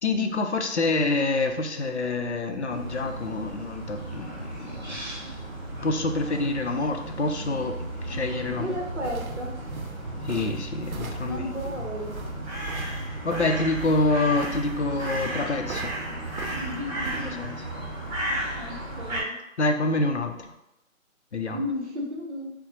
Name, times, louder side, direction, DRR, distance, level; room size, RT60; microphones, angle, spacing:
voice 1, 0.0-5.1 5.8-8.8 10.3-11.5 13.2-15.9 17.2-17.5 19.6-20.4 21.3-21.6, left 2 dB, 55° left, 4 dB, 0.5 m, -27 dB
sound 1, 2.7-19.2, right 1 dB, 35° right, 1.4 m, -34 dB
voice 2, 8.4-9.5 11.2-12.1 16.5-17.4 18.6-19.3 21.5-22.5, left 1 dB, 55° right, 0 dB, 0.9 m, -34 dB
sound 2, 9.0-17.2, right 4 dB, 90° right, 0.7 m, -41 dB
5.6 x 2.1 x 2.8 m, 0.89 s
figure-of-eight pair, 165°, 41 cm